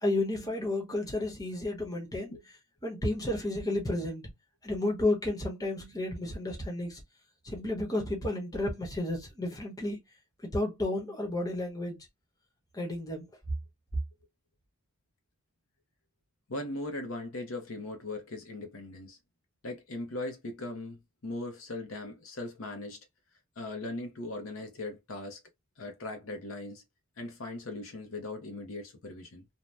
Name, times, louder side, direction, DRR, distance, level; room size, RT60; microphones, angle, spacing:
voice 1, 0.0-2.4 2.8-4.3 4.6-7.0 7.4-10.0 10.4-12.1 12.7-13.3, left 2 dB, 15° left, 0.9 m, -32 dB
voice 2, 16.5-19.2 19.6-23.0 23.6-25.4 25.8-26.8 27.2-29.4, left 2 dB, 75° left, 0.8 m, -39 dB
2.6 x 2.2 x 3.2 m
head